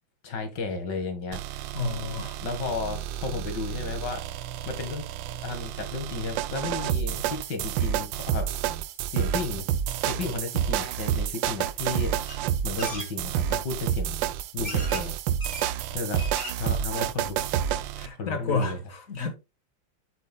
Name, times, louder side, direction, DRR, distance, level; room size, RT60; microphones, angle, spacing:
voice 1, 0.2-1.7 2.4-4.2 4.7-5.1 5.4-8.7 9.1-9.7 10.1-12.2 12.6-14.2 14.5-15.1 15.9-16.2 16.6-17.5 18.2-18.8, left 4 dB, 70° left, 2.2 m, -33 dB
sound 1, 1.3-18.1, right 10 dB, 80° right, 1.3 m, -29 dB
voice 2, 1.7-2.4 17.9-19.3, left 3 dB, 45° left, 1.7 m, -30 dB
sound 2, 12.3-12.4 12.8-13.1 14.0-14.1 14.6-15.0 15.4-15.7 16.0-16.7 17.1-17.2 17.4-17.5, left 1 dB, 20° left, 2.5 m, -37 dB
7.9 x 7.8 x 2.2 m
omnidirectional pair, 2.0 m